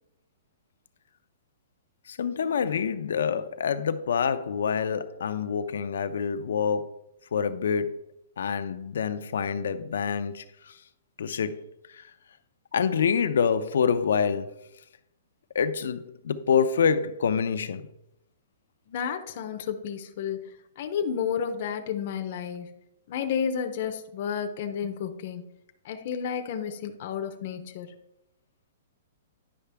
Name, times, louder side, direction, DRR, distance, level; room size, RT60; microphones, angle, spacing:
voice 1, 2.1-7.0 7.3-8.0 8.4-10.7 11.2-11.6 11.9-12.1 12.7-14.5 15.5-17.9, left 6 dB, 80° left, 0.6 m, -26 dB
voice 2, 18.9-22.7 23.1-25.4 25.8-27.9, left 7 dB, 40° left, 0.6 m, -31 dB
9.7 x 5.8 x 3.4 m
hypercardioid pair, 170°, 0 cm